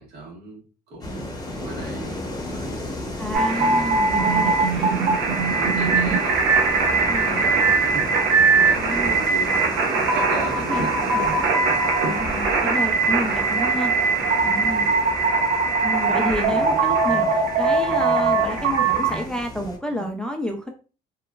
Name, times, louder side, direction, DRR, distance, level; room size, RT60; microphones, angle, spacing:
voice 1, 0.0-2.1 2.5-2.8 3.5-4.5 5.2-6.4 6.8-7.0 7.3-9.6 10.1-11.4 11.6-11.9 14.4-15.1 19.9-20.1, right 2 dB, 75° right, -3 dB, 1.4 m, -37 dB
sound 1, 1.0-19.8, left 1 dB, 20° left, 0.8 m, -34 dB
voice 2, 3.2-5.0 7.1-7.4 8.7-9.2 9.8-10.1 10.6-11.3 12.0-14.2 14.4-14.9 15.8-20.7, left 1 dB, 5° left, 2 dB, 0.4 m, -30 dB
sound 2, 3.3-19.2, right 4 dB, 90° right, 0.6 m, -21 dB
2.9 x 2.3 x 2.2 m, 0.36 s
cardioid pair, 110°, 17 cm